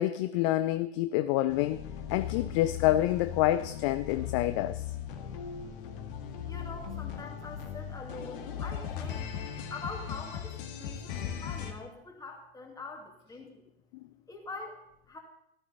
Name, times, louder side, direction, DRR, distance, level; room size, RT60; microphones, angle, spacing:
voice 1, 0.0-1.8 2.1-4.9, left 14 dB, 30° left, 0.4 m, -27 dB
sound 1, 1.5-11.7, left 8 dB, 55° left, 2.0 m, -38 dB
voice 2, 6.4-9.3 9.7-13.6 14.3-14.8 15.1-15.2, left 3 dB, 10° left, 2.4 m, -44 dB
14.5 x 12.0 x 4.1 m
figure-of-eight pair, 105°, 33 cm